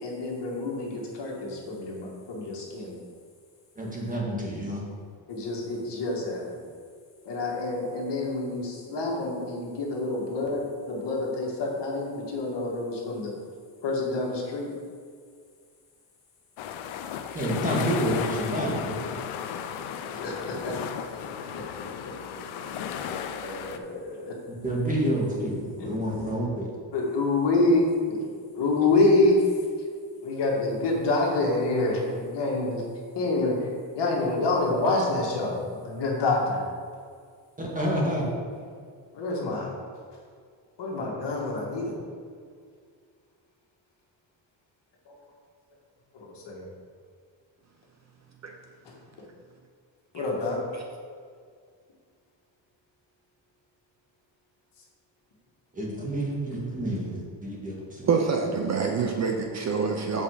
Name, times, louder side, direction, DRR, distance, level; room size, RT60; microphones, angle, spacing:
voice 1, 0.0-3.0 5.3-6.6 7.3-13.3 13.8-14.7 20.1-20.8 22.8-22.9 23.3-24.3 25.8-25.9 26.9-28.3 28.6-29.5 30.2-32.8 33.1-33.6 34.0-36.6 39.1-39.7 40.8-42.0 45.1-45.2 46.1-46.7 48.9-49.0 50.1-50.6, left 2 dB, 60° left, -2 dB, 2.1 m, -27 dB
voice 2, 3.8-4.8 17.3-19.1 24.5-26.7 37.6-38.3 55.7-58.0, right 1 dB, 15° right, -4 dB, 1.9 m, -29 dB
sound 1, 16.6-23.8, left 8 dB, 85° left, 0.7 m, -34 dB
voice 3, 58.0-60.2, right 5 dB, 35° right, 2 dB, 0.7 m, -26 dB
7.4 x 5.4 x 5.0 m, 2.1 s
cardioid pair, 135°, 47 cm